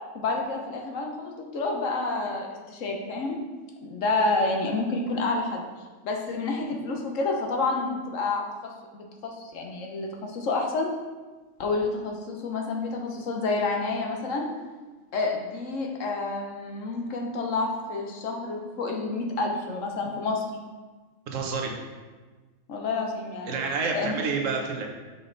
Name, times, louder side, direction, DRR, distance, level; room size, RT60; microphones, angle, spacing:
voice 1, 0.1-3.4 3.8-5.6 6.0-10.9 11.6-14.5 15.1-20.5 22.7-23.6 23.9-24.1, left 3 dB, 70° left, 1 dB, 1.2 m, -29 dB
voice 2, 21.3-21.7 23.5-24.9, right 4 dB, 70° right, 1 dB, 1.3 m, -28 dB
5.6 x 5.4 x 3.9 m, 1.3 s
omnidirectional pair, 1.4 m